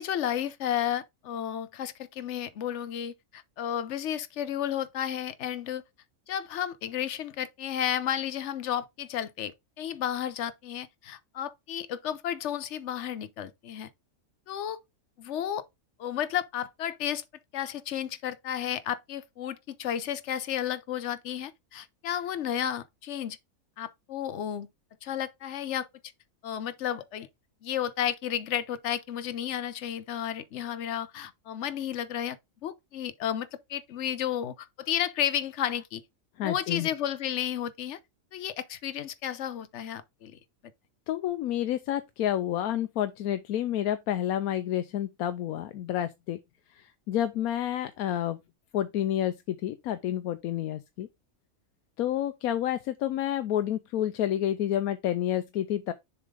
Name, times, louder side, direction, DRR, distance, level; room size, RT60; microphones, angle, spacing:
voice 1, 0.0-5.8 6.3-13.9 14.5-14.8 15.2-15.6 16.0-17.2 17.5-23.4 23.8-24.7 25.0-25.9 26.4-27.3 27.6-36.0 36.4-38.0 38.3-40.4, left 10 dB, 60° left, 1.0 m, -32 dB
voice 2, 36.4-36.9 41.1-46.4 46.8-48.4 48.7-51.1 52.0-55.9, left 11 dB, 90° left, 1.1 m, -29 dB
6.8 x 3.6 x 5.0 m
omnidirectional pair, 1.5 m